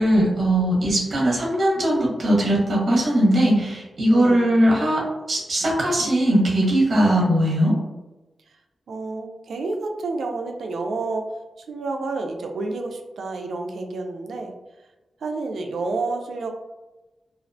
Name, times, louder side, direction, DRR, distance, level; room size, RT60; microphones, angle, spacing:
voice 1, 0.0-5.0 5.3-7.7, right 1 dB, 55° right, -3 dB, 0.8 m, -19 dB
voice 2, 4.1-4.5 8.9-11.2 11.6-14.5 15.2-16.5, right 3 dB, 85° right, 3 dB, 0.3 m, -29 dB
2.4 x 2.0 x 2.6 m, 1.1 s
wide cardioid pair, 95°, 0 cm